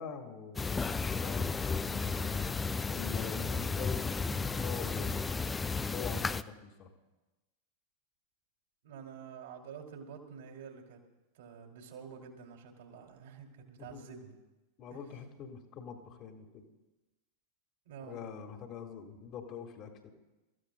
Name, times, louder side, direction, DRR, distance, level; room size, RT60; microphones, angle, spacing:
voice 1, 0.0-2.5 2.9-5.6 5.9-6.9 13.8-14.1 14.8-16.6 18.0-20.1, left 7 dB, 35° left, 4 dB, 1.7 m, -45 dB
sound 1, 0.6-6.4, left 4 dB, 15° left, 0.4 m, -33 dB
voice 2, 8.8-11.0 11.3-14.3 14.9-15.0 17.9-18.3, right 6 dB, 55° right, 1 dB, 2.7 m, -48 dB
28.0 x 14.5 x 2.2 m, 1.1 s
figure-of-eight pair, 90°, 0 cm